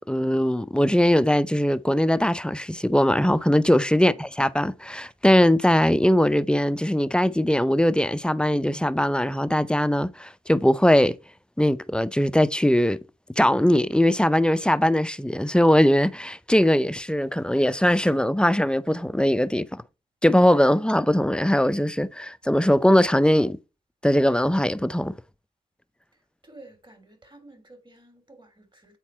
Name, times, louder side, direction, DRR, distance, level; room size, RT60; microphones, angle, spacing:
voice 1, 0.1-11.2 11.6-13.0 13.4-19.8 20.2-23.6 24.0-25.1, left 1 dB, 5° left, 0.5 m, -21 dB
voice 2, 26.4-29.0, right 2 dB, 25° right, 3.1 m, -51 dB
8.3 x 4.3 x 4.4 m
supercardioid pair, 50°, 18 cm